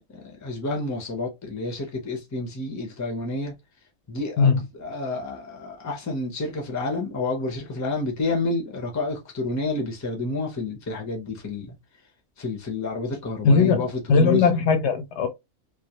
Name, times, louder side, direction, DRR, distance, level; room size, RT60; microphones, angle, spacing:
voice 1, 0.1-3.5 4.1-11.8 12.4-14.5, left 3 dB, 20° left, 0.4 m, -29 dB
voice 2, 13.4-13.8 14.1-15.3, left 5 dB, 70° left, 0.8 m, -19 dB
2.3 x 2.0 x 2.8 m
omnidirectional pair, 1.3 m